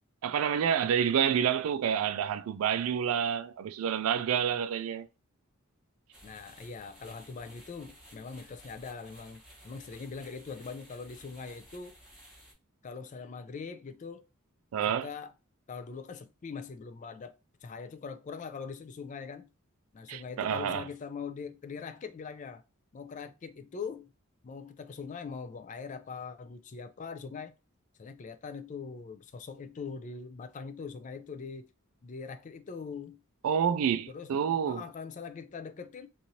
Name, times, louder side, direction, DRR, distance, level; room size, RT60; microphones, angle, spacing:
voice 1, 0.2-5.1 14.7-15.1 20.1-20.8 33.4-34.8, right 8 dB, 75° right, 0.3 m, -28 dB
sound 1, 6.1-12.5, equal, 5° right, 0.9 m, -55 dB
voice 2, 6.2-11.9 12.8-14.3 14.9-15.3 15.7-17.3 17.6-19.5 19.9-22.6 22.9-24.1 24.4-27.5 28.0-31.7 32.0-33.2 34.1-34.3 34.6-36.1, left 5 dB, 35° left, 0.3 m, -42 dB
3.0 x 2.6 x 2.7 m
head